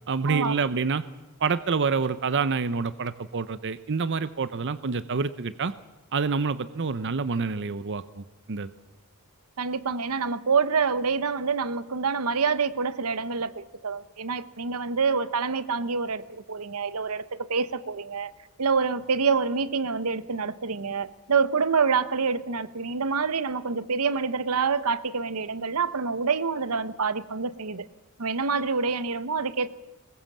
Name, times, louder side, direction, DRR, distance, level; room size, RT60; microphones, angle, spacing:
voice 1, 0.1-1.0 1.4-5.7 6.1-8.7, right 4 dB, 55° right, 14 dB, 0.7 m, -27 dB
voice 2, 9.6-18.3 18.6-27.9 28.2-29.7, right 5 dB, 85° right, 15 dB, 1.0 m, -27 dB
22.0 x 20.5 x 7.4 m, 1.1 s
head